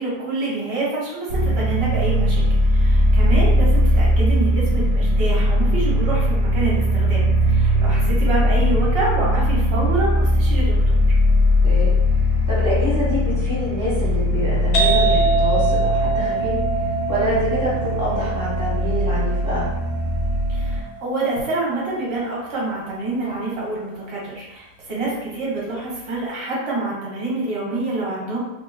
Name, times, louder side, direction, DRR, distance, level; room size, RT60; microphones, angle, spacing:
voice 1, 0.0-7.2 7.5-10.9 20.5-28.4, right 2 dB, 40° right, -5 dB, 1.1 m, -27 dB
sound 1, 1.3-20.8, equal, 80° right, 0.6 m, -19 dB
voice 2, 7.7-8.2 11.6-11.9 12.5-19.7, equal, 15° left, -9 dB, 0.6 m, -26 dB
sound 2, 14.7-22.2, right 4 dB, 75° left, 1.1 m, -25 dB
2.9 x 2.1 x 3.6 m, 0.99 s
omnidirectional pair, 1.8 m